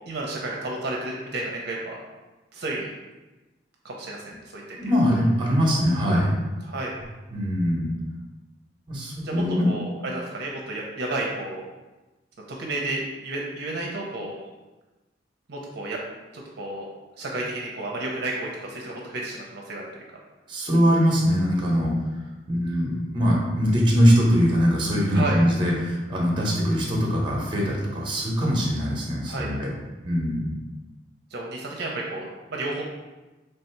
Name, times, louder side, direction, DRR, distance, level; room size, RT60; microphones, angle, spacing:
voice 1, 0.1-2.0 2.5-2.9 3.8-4.8 6.7-6.9 9.2-11.6 12.5-14.3 15.5-16.0 16.6-16.9 17.2-19.9 25.1-25.4 29.3-29.6 31.3-32.8, right 2 dB, 60° right, -2 dB, 0.6 m, -31 dB
voice 2, 4.8-6.3 7.3-7.9 8.9-9.7 20.5-21.9 22.5-29.7 30.0-30.5, equal, 25° right, -2 dB, 0.8 m, -22 dB
3.3 x 2.7 x 4.4 m, 1.1 s
head